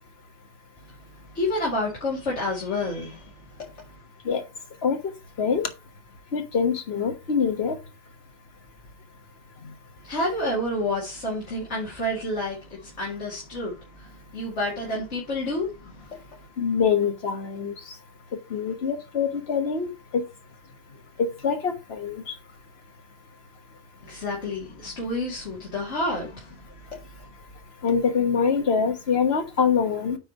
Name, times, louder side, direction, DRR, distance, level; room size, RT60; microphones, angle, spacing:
voice 1, 1.3-3.9 10.0-16.3 24.0-26.6 26.9-27.0, left 1 dB, 85° left, 2.5 m, -30 dB
voice 2, 6.3-7.8 16.6-17.7 18.5-19.9 21.4-22.2 27.8-30.2, left 6 dB, 65° left, 1.5 m, -24 dB
9.0 x 3.2 x 5.3 m
omnidirectional pair, 1.2 m